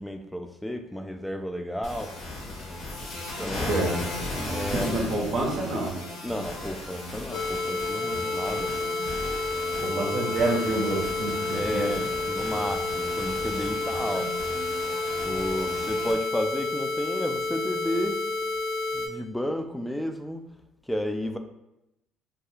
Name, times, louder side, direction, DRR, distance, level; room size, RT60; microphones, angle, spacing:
voice 1, 0.0-2.1 3.4-4.0 4.4-4.9 6.2-8.7 9.9-10.4 11.5-14.3 15.2-18.2 18.9-20.4 20.9-21.4, equal, 5° left, 6 dB, 0.3 m, -32 dB
sound 1, 1.8-16.1, left 2 dB, 60° left, 0.8 m, -36 dB
voice 2, 4.7-5.9 9.8-11.9, right 2 dB, 60° right, -1 dB, 0.6 m, -28 dB
sound 2, 7.3-19.1, left 3 dB, 90° left, 0.5 m, -30 dB
2.3 x 2.2 x 3.0 m, 0.87 s
hypercardioid pair, 65°, 0 cm